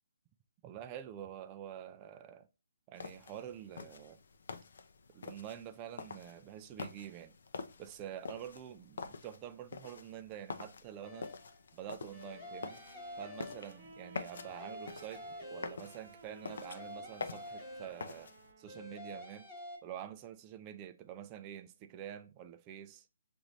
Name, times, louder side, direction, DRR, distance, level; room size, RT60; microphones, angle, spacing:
voice 1, 0.6-2.5 2.9-4.2 5.1-7.3 7.8-11.3 11.7-12.8 13.2-18.3 18.6-19.5 19.8-23.1, right 10 dB, 20° right, 0.3 m, -47 dB
sound 1, 3.0-18.5, left 5 dB, 65° left, 0.5 m, -47 dB
sound 2, 11.0-11.6 12.1-14.0 14.3-16.1 16.5-18.3 18.7-19.8, left 1 dB, 15° left, 1.1 m, -48 dB
Wind instrument woodwind instrument, 12.1-19.3, right 3 dB, 45° right, 1.2 m, -56 dB
6.0 x 2.6 x 3.0 m
hypercardioid pair, 165°, 0 cm